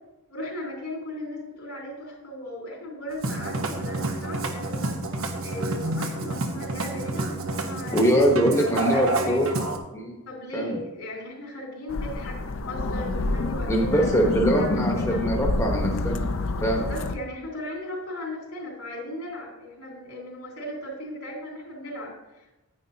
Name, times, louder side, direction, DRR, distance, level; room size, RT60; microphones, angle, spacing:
voice 1, 0.3-9.6 10.3-15.2 16.7-22.5, left 1 dB, 85° left, -2 dB, 3.4 m, -37 dB
Musical instrument, 3.1-9.8, right 2 dB, 65° right, 1.1 m, -29 dB
voice 2, 7.9-9.5 9.9-10.2 10.5-10.8 13.7-16.2 16.6-16.9, equal, 15° left, -1 dB, 1.1 m, -23 dB
sound 1, 11.9-17.1, left 2 dB, 65° left, 0.6 m, -27 dB
9.9 x 9.7 x 2.9 m, 1.0 s
head